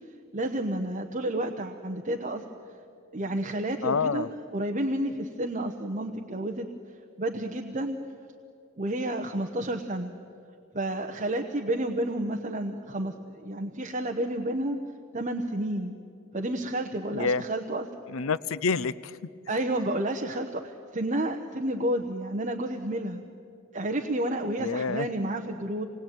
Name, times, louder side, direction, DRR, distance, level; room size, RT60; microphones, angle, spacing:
voice 1, 0.3-2.4 3.1-6.7 7.2-8.0 8.8-10.1 10.7-14.8 15.1-16.0 16.3-17.9 19.5-23.2 23.7-25.8, right 1 dB, 35° right, 4 dB, 1.1 m, -30 dB
voice 2, 3.8-4.3 17.1-17.4 18.1-19.1 24.6-25.1, left 5 dB, 75° left, 17 dB, 0.6 m, -27 dB
26.5 x 20.0 x 9.2 m, 2.5 s
head